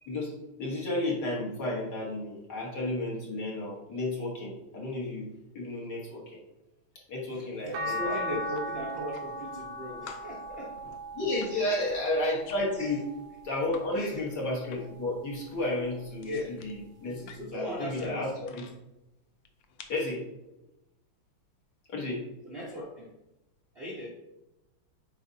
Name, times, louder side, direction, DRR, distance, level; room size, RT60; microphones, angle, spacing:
voice 1, 0.0-5.3 5.5-6.4 7.1-8.4 11.1-13.0 13.4-16.3 16.6-18.5 19.9-20.3 21.9-22.3, left 1 dB, 50° left, -3 dB, 1.9 m, -32 dB
voice 2, 7.2-10.8 11.5-11.7 12.8-13.0 13.9-14.3 16.2-16.5 17.0-18.6 22.4-23.1 23.7-24.1, left 1 dB, 40° right, -4 dB, 0.9 m, -38 dB
sound 1, 7.7-14.0 14.6-16.0 17.4-17.5, equal, 70° right, 1.3 m, -39 dB
sound 2, 8.8-9.7 10.1-13.9 14.2-15.1 15.3-18.8 19.4-20.1, left 6 dB, 70° left, 1.3 m, -51 dB
7.9 x 4.9 x 2.7 m, 0.95 s
omnidirectional pair, 2.4 m